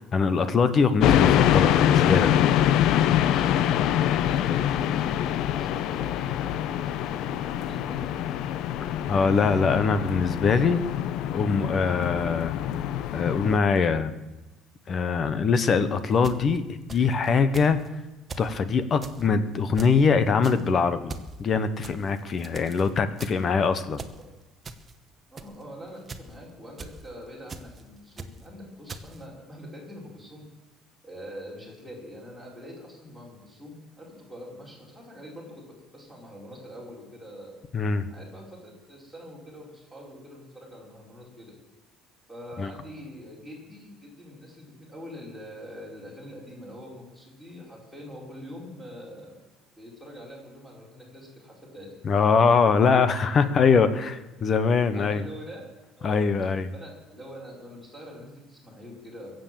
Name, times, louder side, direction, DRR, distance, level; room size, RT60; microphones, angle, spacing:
voice 1, 0.1-2.5 9.1-10.8 11.3-12.6 13.1-14.1 14.9-17.8 18.4-21.1 21.4-24.0 37.7-38.1 42.6-42.7 52.0-55.2 56.0-56.7, left 5 dB, 30° left, 12 dB, 1.0 m, -23 dB
sound 1, 1.0-13.6, left 10 dB, 60° left, 0.7 m, -24 dB
voice 2, 5.5-8.1 10.4-10.9 25.3-30.4 31.0-35.6 35.9-37.6 38.1-41.5 42.3-49.4 49.8-52.0 54.9-55.7 56.0-56.3 56.7-59.4, equal, 5° left, -3 dB, 4.7 m, -44 dB
sound 2, 16.1-17.3 17.5-17.9 18.3-18.6 19.0-19.3 19.7-20.1 20.4-20.7 21.1-21.3 21.8-22.9 23.2-23.5 23.9-24.2 24.6-24.9 25.4-25.6 26.1-26.3 26.8-27.1 27.5-27.8 28.2-28.5 28.9-29.2, right 3 dB, 20° right, 1.1 m, -41 dB
22.5 x 7.9 x 7.6 m, 1.1 s
cardioid pair, 160°, 0 cm